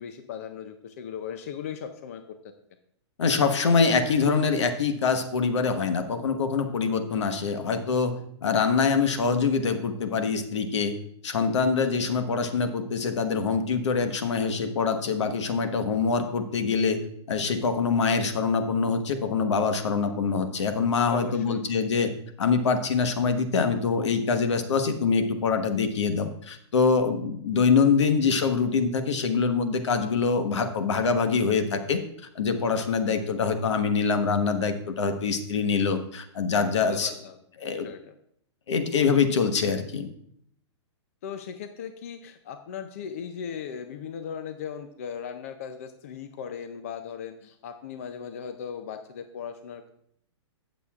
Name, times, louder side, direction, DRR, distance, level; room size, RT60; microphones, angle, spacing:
voice 1, 0.0-2.4 21.1-21.6 36.7-37.4 37.7-38.1 41.2-49.9, left 7 dB, 30° left, 8 dB, 0.5 m, -38 dB
voice 2, 3.2-8.1 8.4-10.9 11.2-17.0 17.3-22.1 22.4-32.0 32.3-37.1 37.6-37.9 38.7-40.1, left 5 dB, 70° left, 7 dB, 1.2 m, -24 dB
16.5 x 6.7 x 2.4 m, 0.69 s
hypercardioid pair, 175°, 15 cm